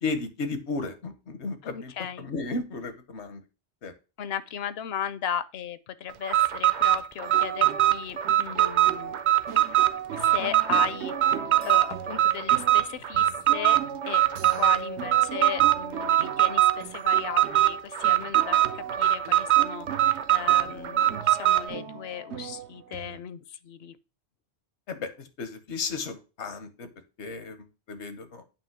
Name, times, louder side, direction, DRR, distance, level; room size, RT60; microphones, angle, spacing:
voice 1, 0.0-1.9 2.2-3.4 3.8-3.9 24.9-26.9 27.2-28.4, left 3 dB, 85° left, 1.3 m, -34 dB
voice 2, 1.6-2.3 4.2-9.2 10.1-13.8 14.1-14.2 14.6-24.0, left 9 dB, 70° left, 0.8 m, -36 dB
Alarm, 6.2-21.7, right 13 dB, 50° right, 0.7 m, -22 dB
sound 1, 7.2-23.2, right 7 dB, 90° right, 1.0 m, -38 dB
8.7 x 3.0 x 5.8 m
omnidirectional pair, 1.1 m